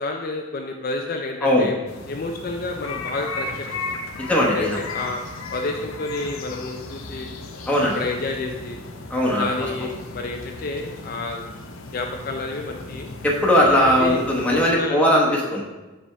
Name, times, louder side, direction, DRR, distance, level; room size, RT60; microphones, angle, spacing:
voice 1, 0.0-1.8 2.1-3.7 4.4-5.2 5.5-7.3 7.9-8.8 9.4-11.4 11.9-13.1 13.6-14.2 14.5-15.0 15.3-15.4, left 3 dB, 45° left, 2 dB, 0.4 m, -30 dB
voice 2, 1.4-1.7 4.2-4.8 7.7-8.0 9.1-9.7 13.2-15.7, equal, 5° left, -4 dB, 1.1 m, -19 dB
sound 1, 1.9-14.7, left 3 dB, 85° left, 0.7 m, -36 dB
6.9 x 5.2 x 3.3 m, 1.1 s
head